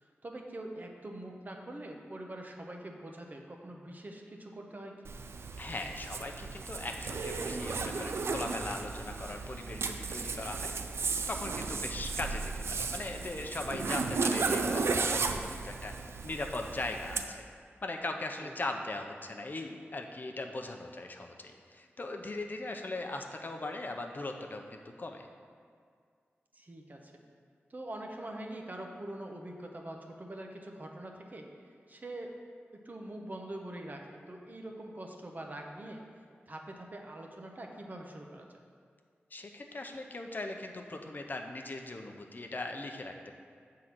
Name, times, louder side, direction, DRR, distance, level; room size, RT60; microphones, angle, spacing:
voice 1, 0.0-4.9 18.4-18.5 26.5-27.1 27.7-31.4 31.9-32.3 32.8-36.0 36.5-38.4, right 1 dB, 45° right, 2 dB, 0.8 m, -44 dB
Zipper (clothing), 5.0-17.2, right 4 dB, 90° right, 0.4 m, -34 dB
voice 2, 5.6-10.7 11.3-15.9 16.2-17.4 17.8-25.3 39.3-43.4, left 2 dB, 45° left, 4 dB, 0.6 m, -39 dB
7.8 x 3.8 x 5.9 m, 2.1 s
wide cardioid pair, 75°, 4 cm